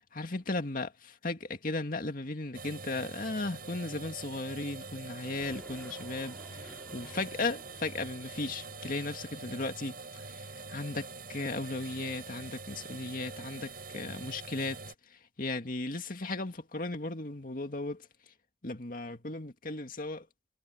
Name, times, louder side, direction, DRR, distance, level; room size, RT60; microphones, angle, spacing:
voice 1, 0.0-14.8 15.1-18.1 18.6-20.3, left 2 dB, 50° left, 2.2 m, -36 dB
sound 1, 2.5-14.9, right 4 dB, 55° right, 7.7 m, -45 dB
sound 2, 5.1-10.8, equal, 5° left, 4.5 m, -56 dB
head